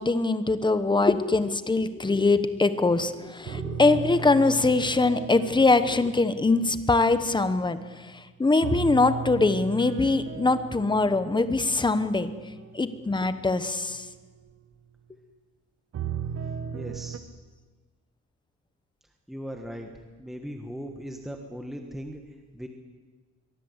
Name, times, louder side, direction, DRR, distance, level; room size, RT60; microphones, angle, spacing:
voice 1, 0.0-12.3 12.7-14.1, left 3 dB, 15° left, 11 dB, 1.0 m, -23 dB
sound 1, 2.3-3.0 3.4-8.0 8.6-14.3 15.9-17.2, right 8 dB, 55° right, 1.3 m, -37 dB
voice 2, 16.7-17.2 19.3-19.9 20.2-22.2 22.5-22.7, equal, ahead, 3 dB, 1.5 m, -38 dB
22.5 x 22.0 x 8.1 m, 1.4 s
wide cardioid pair, 170°, 29 cm